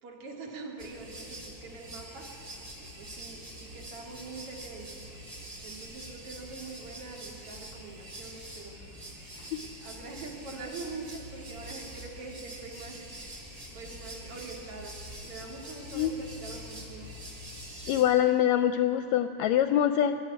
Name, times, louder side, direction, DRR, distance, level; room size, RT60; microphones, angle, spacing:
voice 1, 0.0-5.0 5.6-8.8 9.3-9.5 9.8-17.1, right 3 dB, 50° right, 1 dB, 3.1 m, -44 dB
sound 1, 0.8-18.0, right 1 dB, 30° right, 3.9 m, -45 dB
voice 2, 17.9-20.2, left 10 dB, 80° left, 9 dB, 1.7 m, -24 dB
22.5 x 13.5 x 9.7 m, 2.9 s
omnidirectional pair, 3.4 m